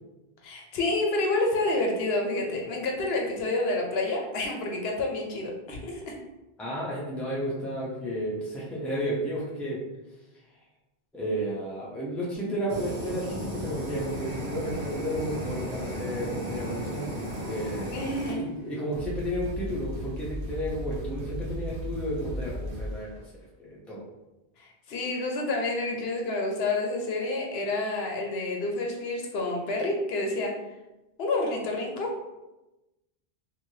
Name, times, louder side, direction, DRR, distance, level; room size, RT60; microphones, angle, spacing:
voice 1, 0.4-6.2 17.9-18.5 24.6-30.6 31.2-32.1, left 2 dB, 75° left, 1 dB, 0.8 m, -29 dB
voice 2, 6.6-9.8 11.1-17.1 17.5-18.0 18.4-23.1 23.6-24.0, equal, ahead, -5 dB, 0.5 m, -32 dB
Fire, 12.7-18.3, equal, 50° right, 1.0 m, -35 dB
sound 1, 17.1-17.8 18.5-18.6 18.9-23.1, equal, 85° right, 1.0 m, -36 dB
3.1 x 2.6 x 2.7 m, 1.0 s
omnidirectional pair, 1.1 m